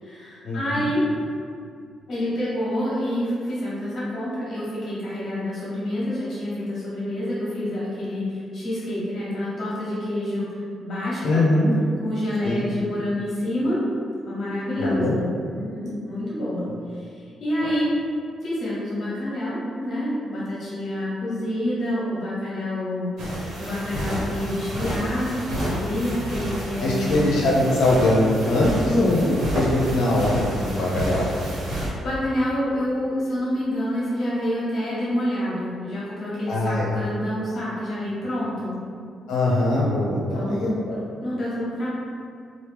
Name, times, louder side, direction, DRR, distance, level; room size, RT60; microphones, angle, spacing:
voice 1, 0.0-1.0 2.1-11.4 12.0-13.8 14.3-15.3 15.5-17.9 18.4-27.2 32.0-38.8 40.3-41.9, left 1 dB, 45° left, -8 dB, 1.3 m, -28 dB
voice 2, 11.2-11.7 12.4-12.7 14.8-15.1 26.8-31.2 36.5-36.9 39.3-40.9, left 1 dB, 75° left, -5 dB, 0.9 m, -21 dB
sound 1, 23.2-31.9, equal, 75° right, 1.2 m, -30 dB
3.1 x 2.7 x 3.3 m, 2.3 s
cardioid pair, 155°, 0 cm